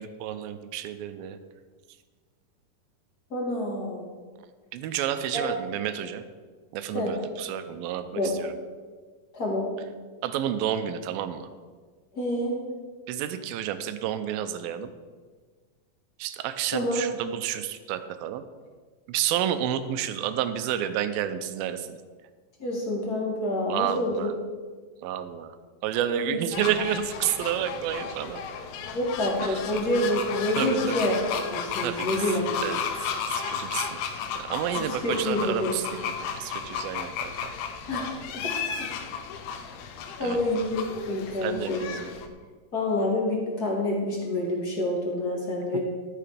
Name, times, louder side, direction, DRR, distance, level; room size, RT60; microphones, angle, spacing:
voice 1, 0.0-1.4 4.7-6.2 6.7-8.1 10.2-11.5 13.1-14.9 16.2-18.4 19.1-22.0 23.7-24.3 25.0-25.5 25.8-28.4 29.4-29.6 30.6-31.0 31.8-32.2 32.6-32.8 33.3-34.0 34.3-37.5 40.2-40.4 41.4-42.1, right 10 dB, 85° right, 10 dB, 2.4 m, -30 dB
voice 2, 3.3-4.1 5.3-5.5 6.9-7.1 8.2-8.3 9.3-9.7 12.1-12.6 16.7-17.0 22.6-24.3 26.2-26.4 28.9-32.6 34.8-35.7 37.9-38.1 38.3-38.5 38.8-38.9 40.2-41.9 42.7-45.8, left 1 dB, 30° left, -2 dB, 2.0 m, -27 dB
sound 1, 26.5-42.3, left 7 dB, 85° left, 2.6 m, -34 dB
13.0 x 6.9 x 5.1 m, 1.5 s
omnidirectional pair, 4.2 m